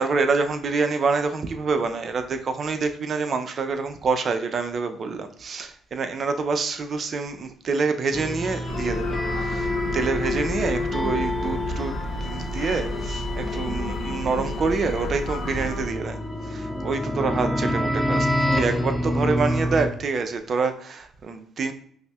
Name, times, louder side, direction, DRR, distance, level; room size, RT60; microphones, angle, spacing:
voice 1, 0.0-11.9 12.2-16.2 16.5-18.3 18.5-21.7, right 4 dB, 50° right, 7 dB, 0.4 m, -26 dB
sound 1, 8.1-19.9, left 1 dB, 15° left, 0.5 m, -28 dB
sound 2, 8.7-15.9, left 1 dB, 90° left, 0.5 m, -32 dB
5.3 x 2.0 x 2.3 m, 0.62 s
supercardioid pair, 70°, 0 cm